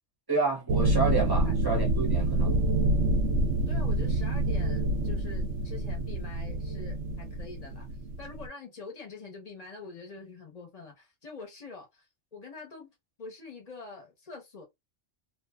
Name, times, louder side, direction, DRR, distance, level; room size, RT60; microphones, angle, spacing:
voice 1, 0.3-2.7, right 4 dB, 20° right, 0.7 m, -29 dB
sound 1, 0.7-8.5, right 1 dB, 85° right, 0.9 m, -27 dB
voice 2, 3.7-7.9 8.2-12.1 12.3-12.9 13.2-14.6, left 4 dB, 35° left, 0.9 m, -45 dB
2.5 x 2.5 x 2.3 m
omnidirectional pair, 1.3 m